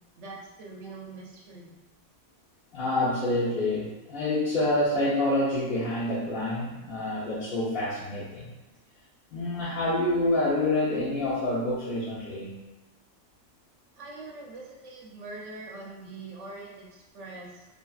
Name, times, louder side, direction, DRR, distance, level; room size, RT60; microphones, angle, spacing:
voice 1, 0.1-1.8 14.0-17.7, right 3 dB, 65° right, -2 dB, 0.9 m, -43 dB
voice 2, 2.7-8.5 9.3-12.6, left 1 dB, 50° left, -11 dB, 0.9 m, -27 dB
2.8 x 2.6 x 2.3 m, 1.0 s
omnidirectional pair, 1.5 m